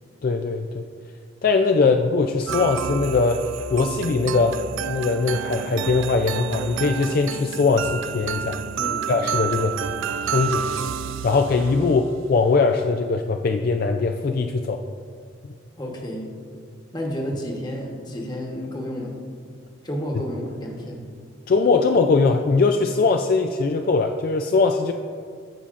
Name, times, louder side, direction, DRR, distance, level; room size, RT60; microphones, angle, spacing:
voice 1, 0.2-0.8 1.4-4.6 4.9-8.6 9.1-9.7 10.3-10.7 11.2-14.8 15.4-15.5 21.5-24.9, left 4 dB, 45° left, 5 dB, 0.3 m, -21 dB
sound 1, 2.5-12.1, right 8 dB, 75° right, 0.3 m, -30 dB
voice 2, 15.8-16.3 16.9-19.1 19.8-21.0, equal, 20° left, 0 dB, 1.1 m, -31 dB
15.5 x 5.6 x 2.5 m, 2.1 s
head